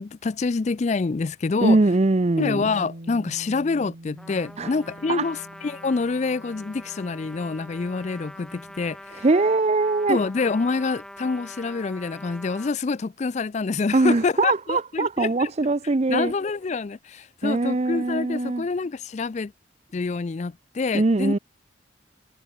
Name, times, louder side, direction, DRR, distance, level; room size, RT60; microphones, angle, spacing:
voice 1, 0.0-1.8 2.4-9.2 10.1-15.5 16.1-19.5 19.9-21.3, left 4 dB, 35° left, 0.4 m, -27 dB
voice 2, 1.6-2.6 4.6-4.7 5.1-5.3 9.2-10.2 13.9-16.3 17.4-18.7 20.9-21.4, right 2 dB, 35° right, 0.5 m, -21 dB
Bass guitar, 2.5-8.8, right 1 dB, 50° right, 2.2 m, -45 dB
Trumpet, 4.2-12.7, left 1 dB, 5° left, 3.2 m, -44 dB
head